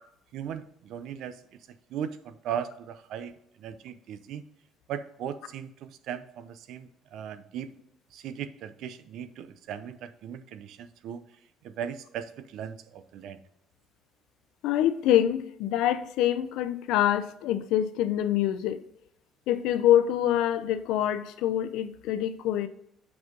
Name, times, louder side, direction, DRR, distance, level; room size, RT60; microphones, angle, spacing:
voice 1, 0.3-1.4 1.9-3.3 3.6-4.4 4.9-7.7 8.1-11.2 11.6-13.4, right 9 dB, 65° right, 0.6 m, -38 dB
voice 2, 14.6-18.8 19.5-22.7, left 11 dB, 80° left, 0.6 m, -25 dB
7.9 x 5.5 x 3.9 m
cardioid pair, 160°, 0 cm